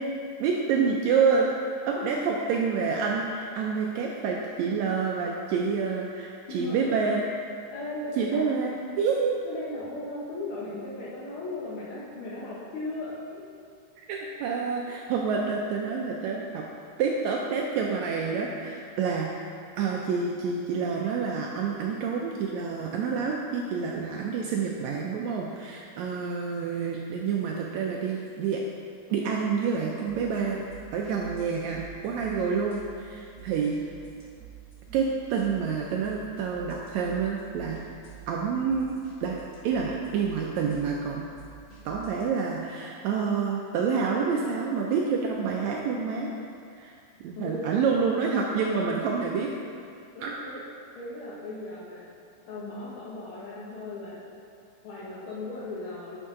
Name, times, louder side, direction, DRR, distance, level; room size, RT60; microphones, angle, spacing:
voice 1, 0.4-1.5 1.9-7.2 8.2-9.4 14.1-16.6 17.0-19.4 19.8-28.6 29.1-30.6 30.9-33.8 34.9-37.8 38.3-39.4 39.6-41.2 41.8-46.3 46.8-47.0 47.2-49.5 50.2-50.3, right 5 dB, 85° right, -1 dB, 1.6 m, -28 dB
voice 2, 6.5-7.0 7.7-8.4 9.4-13.5 47.4-47.7 50.1-50.6 50.9-52.1 52.5-54.2 54.8-56.3, left 2 dB, 75° left, -7 dB, 1.2 m, -37 dB
sound 1, 30.1-42.3, right 10 dB, 40° left, 0.8 m, -48 dB
9.7 x 5.5 x 3.7 m, 2.3 s
omnidirectional pair, 3.9 m